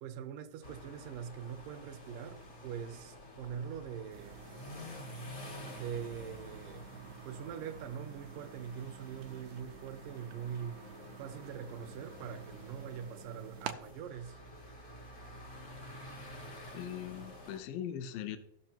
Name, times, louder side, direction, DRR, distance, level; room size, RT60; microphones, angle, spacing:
voice 1, 0.0-4.4 5.7-6.9 7.3-10.8 11.2-14.4, right 8 dB, 70° right, 2.2 m, -43 dB
sound 1, 0.6-17.6, left 1 dB, 50° left, 1.0 m, -50 dB
sound 2, 4.1-13.7, right 10 dB, 85° right, 1.8 m, -50 dB
voice 2, 16.7-18.4, left 10 dB, 75° left, 2.3 m, -40 dB
17.0 x 6.3 x 2.9 m
omnidirectional pair, 4.5 m